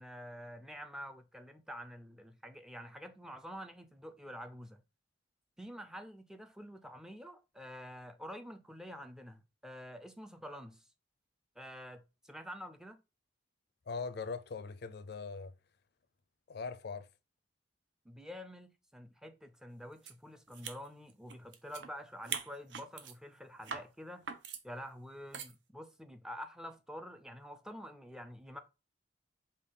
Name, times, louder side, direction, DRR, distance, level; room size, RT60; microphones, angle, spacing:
voice 1, 0.0-4.8 5.6-10.8 11.6-13.0 18.1-24.3 24.6-28.6, equal, 5° right, 0.4 m, -48 dB
voice 2, 13.9-15.5 16.5-17.1, left 4 dB, 60° left, 0.5 m, -41 dB
sound 1, 20.1-20.2 20.5-21.9 22.2-23.2 23.6-23.9 24.3-24.6 25.3-25.6, right 7 dB, 75° right, 0.6 m, -42 dB
5.2 x 2.3 x 3.8 m
head